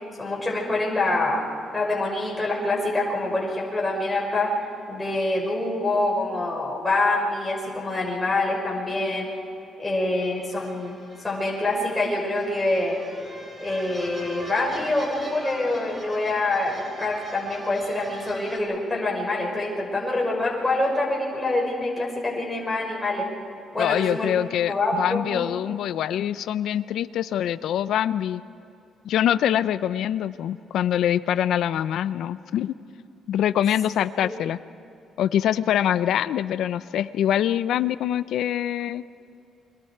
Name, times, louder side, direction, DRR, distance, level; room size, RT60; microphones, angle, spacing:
voice 1, 0.2-1.4 1.7-9.3 9.8-11.0 11.2-13.0 13.6-23.3 23.7-24.3 24.7-25.4 34.2-34.3, left 2 dB, 15° left, -3 dB, 5.8 m, -25 dB
sound 1, 10.1-18.6, right 1 dB, 30° right, 3.7 m, -42 dB
voice 2, 23.8-28.4 29.0-32.8 33.3-34.6 35.2-39.0, left 10 dB, 75° left, 15 dB, 0.6 m, -24 dB
29.0 x 23.0 x 4.7 m, 2.8 s
cardioid pair, 90°, 0 cm